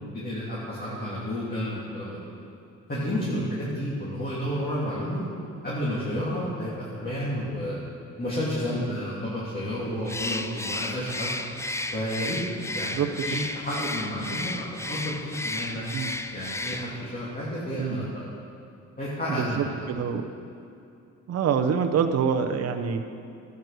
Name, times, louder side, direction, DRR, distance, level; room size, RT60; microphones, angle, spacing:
voice 1, 0.0-2.2 2.9-5.2 5.6-7.8 8.2-11.3 11.9-12.4 12.6-15.8 16.3-18.2 19.0-19.7, equal, 30° left, -8 dB, 2.8 m, -31 dB
Bird, 10.0-17.1, left 2 dB, 10° left, 0.5 m, -33 dB
voice 2, 12.9-13.5 15.9-16.1 17.7-18.1 19.3-20.3 21.3-23.0, right 7 dB, 55° right, 6 dB, 0.8 m, -26 dB
12.0 x 8.2 x 6.6 m, 2.5 s
cardioid pair, 90°, 30 cm